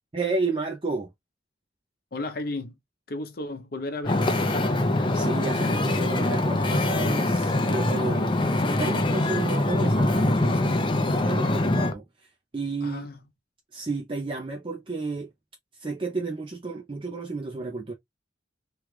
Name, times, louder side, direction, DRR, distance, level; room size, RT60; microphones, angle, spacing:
voice 1, 0.1-1.1 5.1-8.4 8.8-12.0 12.5-13.1 13.7-15.3 15.8-17.9, right 3 dB, 30° right, 0.5 m, -31 dB
voice 2, 2.1-2.8 3.1-5.1 12.8-13.3, left 2 dB, 55° left, 0.8 m, -35 dB
Wind / Ocean, 4.0-11.9, left 2 dB, 25° left, 0.5 m, -24 dB
3.1 x 2.3 x 3.2 m
head